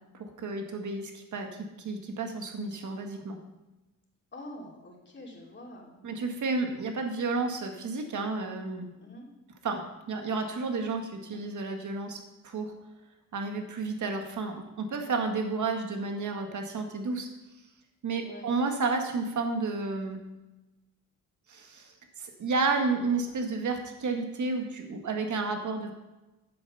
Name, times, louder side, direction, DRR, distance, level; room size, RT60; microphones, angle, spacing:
voice 1, 0.1-3.4 6.0-8.9 9.6-12.7 13.3-17.3 18.0-20.2 21.5-21.9 22.2-25.9, right 3 dB, 60° right, 4 dB, 1.8 m, -31 dB
voice 2, 4.3-6.0 9.0-9.3 18.2-18.5, left 1 dB, 35° left, -2 dB, 3.1 m, -46 dB
9.9 x 7.5 x 5.7 m, 1.0 s
cardioid pair, 80°, 34 cm